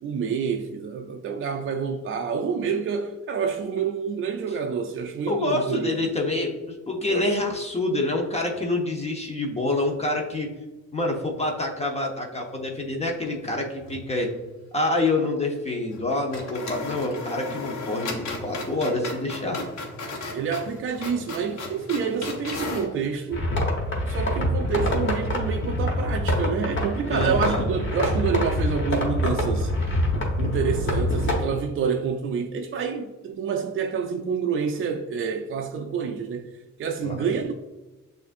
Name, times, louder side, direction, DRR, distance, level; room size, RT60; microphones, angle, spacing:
voice 1, 0.0-5.9 7.1-7.3 20.3-23.4 24.1-29.7 30.4-37.5, right 6 dB, 45° right, 0.4 m, -28 dB
voice 2, 5.3-10.5 10.9-14.3 14.7-19.6 27.1-27.6 37.0-37.2, left 2 dB, 20° left, 0.8 m, -27 dB
sound 1, 13.2-14.0 14.3-14.4 15.9-16.1 16.3-22.9, left 3 dB, 65° left, 1.1 m, -35 dB
sound 2, 23.3-31.4, left 1 dB, 40° left, 1.4 m, -25 dB
6.9 x 2.5 x 2.5 m
cardioid pair, 90°, 30 cm